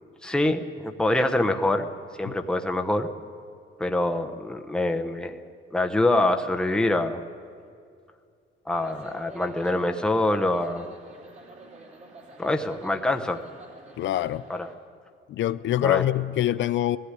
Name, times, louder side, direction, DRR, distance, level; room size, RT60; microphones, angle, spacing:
voice 1, 0.2-1.9 2.2-3.1 3.8-5.4 5.7-7.2 8.7-10.9 12.4-13.4 14.5-14.7 15.8-16.0, left 1 dB, 5° left, 4 dB, 0.9 m, -25 dB
sound 1, 8.7-14.7, right 2 dB, 35° right, 2.8 m, -48 dB
voice 2, 14.0-14.5 15.3-17.0, left 13 dB, 65° left, 13 dB, 0.5 m, -25 dB
18.0 x 15.0 x 9.8 m, 2.3 s
cardioid pair, 165°, 21 cm